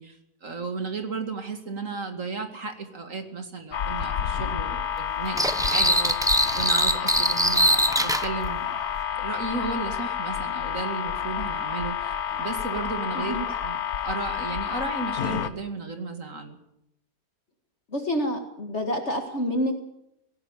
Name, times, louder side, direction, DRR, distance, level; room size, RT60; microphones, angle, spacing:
voice 1, 0.0-8.7 9.2-16.6, right 4 dB, 50° right, 6 dB, 2.6 m, -34 dB
sound 1, 3.7-15.5, left 8 dB, 65° left, 1.5 m, -29 dB
sound 2, 5.4-8.3, right 1 dB, 5° right, 0.5 m, -22 dB
voice 2, 17.9-19.7, equal, 40° left, 3 dB, 2.2 m, -28 dB
17.5 x 17.0 x 9.0 m, 0.80 s
omnidirectional pair, 1.8 m